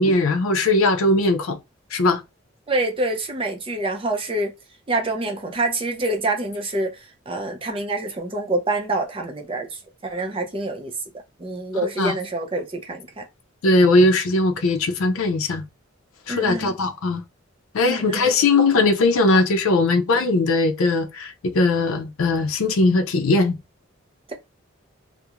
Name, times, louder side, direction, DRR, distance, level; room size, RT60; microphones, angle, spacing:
voice 1, 0.0-1.6 1.9-2.2 12.0-12.1 13.6-15.6 16.3-17.2 17.7-23.6, left 2 dB, 85° left, 0.5 m, -19 dB
voice 2, 2.7-4.5 4.9-10.9 11.4-13.2 16.3-16.8 17.8-18.3, right 2 dB, 25° right, 0.5 m, -26 dB
2.4 x 2.0 x 2.9 m
head